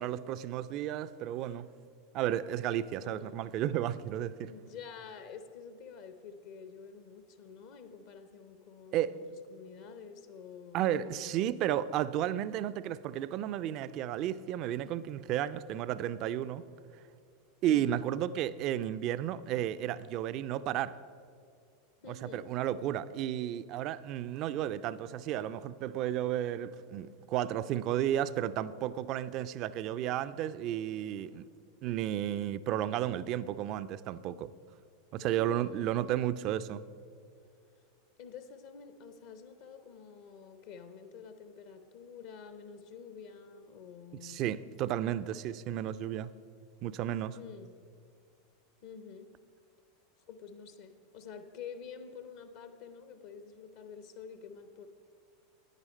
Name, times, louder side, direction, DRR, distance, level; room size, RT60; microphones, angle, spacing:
voice 1, 0.0-1.7 2.1-4.5 8.9-9.1 10.7-16.6 17.6-20.9 22.1-31.4 31.8-34.5 35.1-36.8 44.2-46.3 46.8-47.4, right 11 dB, 45° right, 0.4 m, -33 dB
voice 2, 3.0-3.4 4.5-9.2 9.5-11.6 17.6-18.0 22.0-22.5 35.2-36.0 38.2-44.4 47.3-47.7 48.8-49.4 50.3-54.9, left 6 dB, 55° left, 0.7 m, -48 dB
9.8 x 9.1 x 5.3 m
figure-of-eight pair, 85°, 0 cm